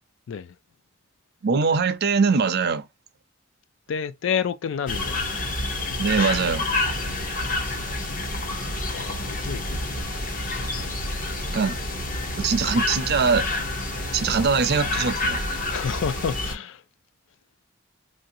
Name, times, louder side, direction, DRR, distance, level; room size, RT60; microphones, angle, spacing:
voice 1, 1.4-2.8 6.0-6.7 11.5-11.8 12.4-13.4 14.1-15.4, right 5 dB, 55° right, 0.5 m, -22 dB
voice 2, 3.9-5.3 8.9-9.8 15.7-16.8, left 7 dB, 65° left, 0.4 m, -29 dB
sound 1, 4.9-16.5, left 2 dB, 45° left, 0.8 m, -28 dB
3.0 x 2.6 x 2.6 m
head